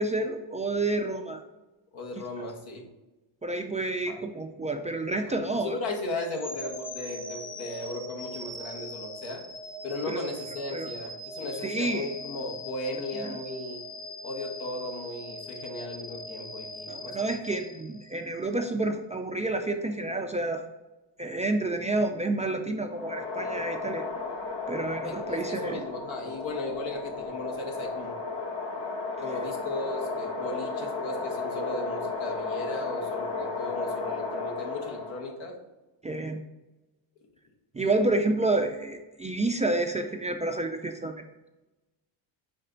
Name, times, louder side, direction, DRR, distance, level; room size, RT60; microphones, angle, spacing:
voice 1, 0.0-1.4 3.4-5.8 10.1-10.2 10.7-10.9 11.6-12.1 13.2-13.4 16.9-20.6 21.2-24.0 24.7-25.8 36.0-36.4 37.7-41.2, right 2 dB, 15° right, 4 dB, 0.3 m, -29 dB
voice 2, 1.9-2.9 4.1-4.2 5.3-9.4 9.8-13.8 14.2-17.3 25.0-28.2 29.2-35.6 37.8-37.9, left 2 dB, 80° left, 0 dB, 1.5 m, -36 dB
sound 1, 6.2-18.3, equal, 20° left, 0.7 m, -41 dB
sound 2, 22.9-35.3, left 3 dB, 65° left, 1.8 m, -34 dB
5.8 x 4.4 x 3.8 m, 1.1 s
cardioid pair, 115°, 46 cm